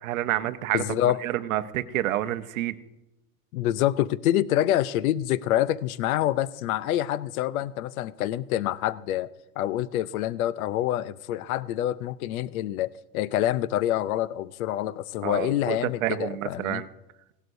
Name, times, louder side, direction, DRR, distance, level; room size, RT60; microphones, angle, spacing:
voice 1, 0.0-2.8 15.2-16.9, right 13 dB, 65° right, 0.8 m, -29 dB
voice 2, 0.7-1.2 3.5-9.3 9.6-16.8, left 13 dB, 70° left, 0.6 m, -26 dB
18.0 x 12.5 x 2.6 m
supercardioid pair, 175°, 45 cm